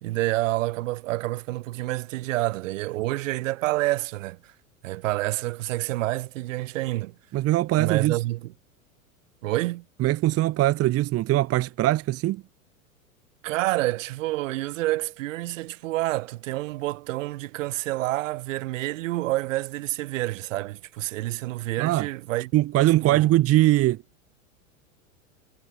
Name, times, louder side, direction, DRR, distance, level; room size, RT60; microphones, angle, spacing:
voice 1, 0.0-4.5 4.8-7.1 7.8-8.5 9.4-9.8 13.4-22.5 23.0-23.3, right 18 dB, 60° right, 2.9 m, -28 dB
voice 2, 7.3-8.2 10.0-12.4 21.8-22.1 22.5-24.0, right 16 dB, 35° right, 1.4 m, -21 dB
hypercardioid pair, 100°, 42 cm